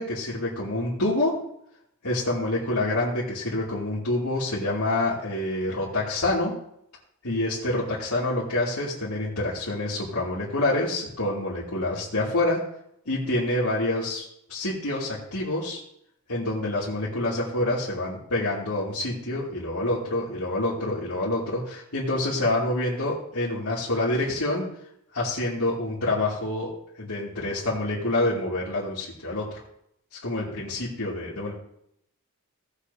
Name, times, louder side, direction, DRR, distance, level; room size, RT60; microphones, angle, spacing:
voice 1, 0.0-1.3 2.0-6.5 7.2-12.6 13.1-15.8 16.3-24.7 25.1-26.7 27.0-29.6 30.1-31.5, left 2 dB, 80° left, -9 dB, 2.7 m, -27 dB
17.5 x 8.3 x 2.8 m, 0.74 s
head